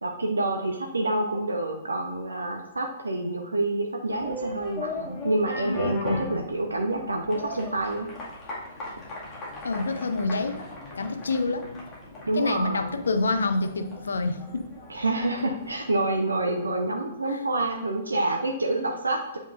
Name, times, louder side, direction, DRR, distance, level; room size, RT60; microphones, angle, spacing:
voice 1, 0.0-8.1 12.2-13.0 14.9-19.4, right 2 dB, 75° right, 3 dB, 0.8 m, -27 dB
sound 1, 4.1-16.8, left 2 dB, 20° left, 2.0 m, -38 dB
voice 2, 9.6-10.6 10.9-11.7 12.3-14.7 17.3-17.4, left 3 dB, 65° left, 9 dB, 0.6 m, -27 dB
8.3 x 5.1 x 2.6 m, 0.86 s
figure-of-eight pair, 115°, 0 cm